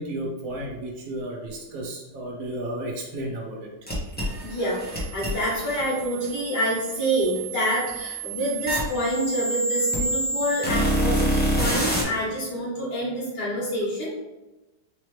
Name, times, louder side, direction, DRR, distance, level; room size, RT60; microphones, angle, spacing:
voice 1, 0.0-3.7, right 1 dB, 55° right, -1 dB, 1.2 m, -33 dB
sound 1, 3.9-12.0, right 1 dB, 10° left, 0.5 m, -27 dB
voice 2, 4.4-14.1, equal, 65° left, -8 dB, 2.1 m, -27 dB
4.0 x 3.0 x 3.2 m, 1.0 s
omnidirectional pair, 2.0 m